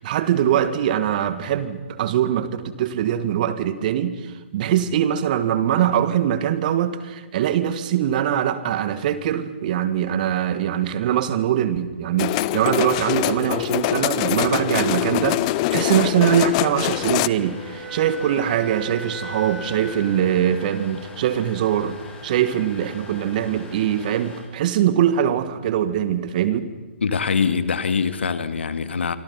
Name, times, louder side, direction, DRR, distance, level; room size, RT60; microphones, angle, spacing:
voice 1, 0.0-22.0 22.2-26.7, right 10 dB, 45° right, 12 dB, 2.1 m, -22 dB
sound 1, 12.2-17.3, left 18 dB, 35° left, 0.6 m, -23 dB
sound 2, 15.2-24.4, left 3 dB, 15° left, 7.7 m, -42 dB
Wind instrument woodwind instrument, 17.1-21.2, equal, 15° right, 5.5 m, -38 dB
voice 2, 27.0-29.2, left 5 dB, 70° left, 11 dB, 2.1 m, -23 dB
28.5 x 25.0 x 5.8 m, 1.3 s
figure-of-eight pair, 130°, 6 cm